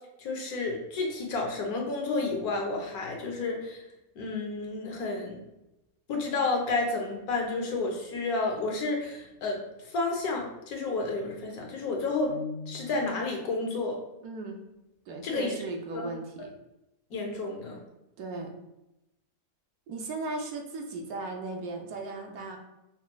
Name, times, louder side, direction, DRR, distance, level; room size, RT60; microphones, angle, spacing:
voice 1, 0.2-3.8 4.2-5.4 6.1-9.6 9.9-12.3 12.7-14.0 15.2-15.6 15.9-16.0 17.1-17.8, left 3 dB, 85° left, 1 dB, 1.3 m, -31 dB
sound 1, 12.3-13.3, left 4 dB, 50° left, 0.7 m, -39 dB
voice 2, 14.2-14.6 15.1-16.5 18.2-18.5 19.9-22.6, right 3 dB, 85° right, 2 dB, 1.1 m, -37 dB
5.5 x 2.9 x 2.2 m, 0.94 s
omnidirectional pair, 1.5 m